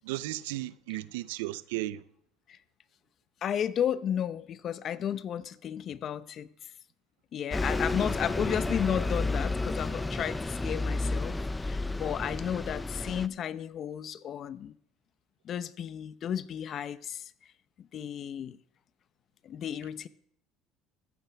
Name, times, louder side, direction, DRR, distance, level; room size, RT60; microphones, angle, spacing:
voice 1, 0.0-2.0, right 16 dB, 90° right, 0.5 m, -35 dB
voice 2, 3.4-6.5 7.3-14.7 15.4-17.2 17.9-18.6 19.4-20.1, left 9 dB, 50° left, 0.7 m, -33 dB
Bus, 7.5-13.3, left 2 dB, 10° left, 0.5 m, -31 dB
14.5 x 14.0 x 3.4 m
supercardioid pair, 95°, 0 cm